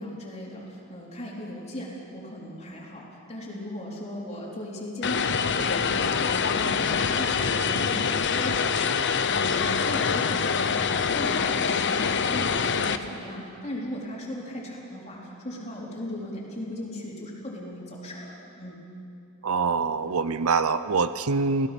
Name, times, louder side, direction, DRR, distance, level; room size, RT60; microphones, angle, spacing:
voice 1, 0.0-9.0 9.3-18.8, equal, 30° left, -3 dB, 3.8 m, -37 dB
Vehicle, 5.0-13.0, left 6 dB, 55° left, 0.8 m, -25 dB
voice 2, 19.4-21.7, right 4 dB, 70° right, 13 dB, 0.7 m, -24 dB
29.0 x 16.5 x 6.0 m, 2.7 s
head